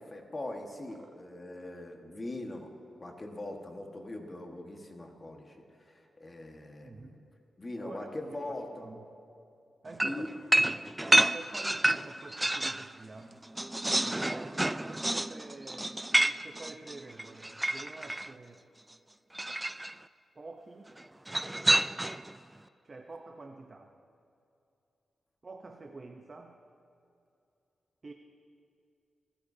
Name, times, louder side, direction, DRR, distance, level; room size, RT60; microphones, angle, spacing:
voice 1, 0.0-2.7 3.0-7.2 7.6-8.9 9.9-10.3, left 1 dB, 25° left, 2 dB, 1.5 m, -41 dB
voice 2, 6.8-7.3 7.8-8.3 8.8-9.1 9.8-10.3 10.6-13.4 14.0-18.7 20.3-20.9 22.8-23.9 25.4-26.6 28.0-28.1, right 3 dB, 35° right, 4 dB, 0.8 m, -47 dB
sound 1, 10.0-12.9 13.2-18.3 19.3-19.9 21.3-22.3, right 1 dB, 10° right, 0.3 m, -29 dB
27.0 x 14.0 x 2.8 m, 2.6 s
wide cardioid pair, 125°, 0 cm